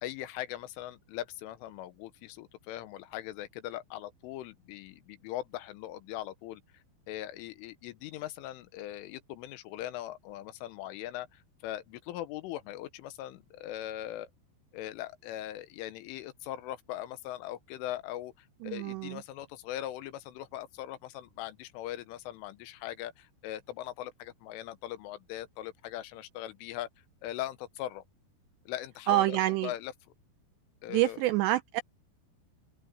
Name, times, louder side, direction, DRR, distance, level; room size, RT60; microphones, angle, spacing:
voice 1, 0.0-6.6 7.1-14.3 14.7-26.9 27.2-28.0 28.7-29.9 30.8-31.2, left 13 dB, 85° left, 3.6 m, -40 dB
voice 2, 18.6-19.2 29.1-29.7 30.9-31.8, right 15 dB, 90° right, 2.5 m, -27 dB
open air
omnidirectional pair, 5.6 m